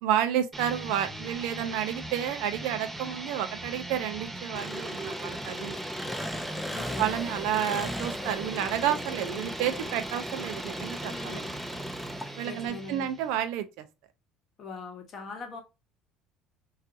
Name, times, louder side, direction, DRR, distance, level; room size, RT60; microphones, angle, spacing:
voice 1, 0.0-5.8 7.0-11.5 12.4-13.9, right 10 dB, 80° right, 0.4 m, -30 dB
sound 1, 0.5-13.4, right 2 dB, 15° right, 0.9 m, -40 dB
Engine, 4.5-12.7, equal, ahead, 0.3 m, -37 dB
voice 2, 6.7-7.1 11.1-11.5 12.4-13.1 14.6-15.6, left 4 dB, 40° left, 0.8 m, -41 dB
2.6 x 2.4 x 2.4 m
cardioid pair, 135°, 0 cm